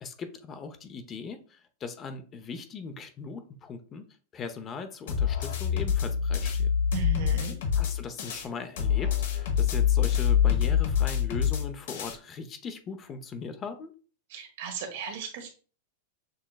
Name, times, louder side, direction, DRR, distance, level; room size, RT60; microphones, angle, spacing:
voice 1, 0.0-4.0 4.3-6.7 7.8-13.9, left 5 dB, 25° left, 8 dB, 0.6 m, -39 dB
sound 1, 5.1-8.5 8.8-12.1, left 8 dB, 75° left, 1.1 m, -26 dB
voice 2, 6.9-7.5 14.3-15.5, right 6 dB, 70° right, 4 dB, 1.2 m, -36 dB
6.4 x 3.0 x 2.3 m, 0.38 s
hypercardioid pair, 130°, 0 cm